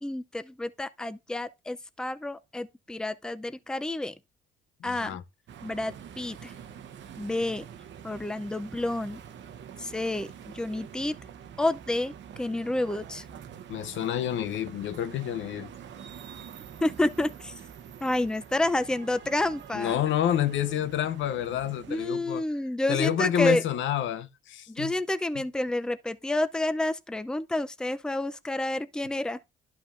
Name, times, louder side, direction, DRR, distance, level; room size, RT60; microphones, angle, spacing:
voice 1, 0.0-4.1 4.8-5.2 5.6-6.5 7.2-7.6 8.0-9.2 9.8-11.1 11.6-12.1 12.4-13.2 16.8-17.5 18.0-20.0 21.9-23.6 24.7-29.4, left 1 dB, 5° left, 0.5 m, -29 dB
voice 2, 4.8-5.2 13.7-15.7 19.7-22.4 22.9-25.0 25.3-25.4, left 10 dB, 75° left, 0.7 m, -28 dB
sound 1, 5.5-22.1, right 8 dB, 70° right, 0.9 m, -46 dB
11.5 x 5.7 x 2.5 m
cardioid pair, 90°, 20 cm